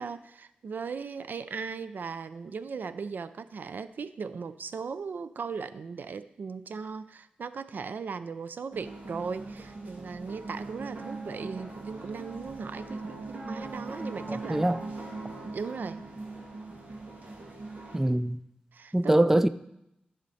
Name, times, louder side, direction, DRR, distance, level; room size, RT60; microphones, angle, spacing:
voice 1, 0.0-14.6 15.4-16.0 18.7-19.4, right 5 dB, 85° right, 13 dB, 0.4 m, -38 dB
sound 1, 8.7-18.0, right 2 dB, 70° right, 2.3 m, -40 dB
voice 2, 14.3-14.8 17.9-18.4 18.9-19.5, right 1 dB, 10° right, 14 dB, 0.4 m, -23 dB
13.5 x 6.5 x 4.2 m, 0.83 s
wide cardioid pair, 70°, 3 cm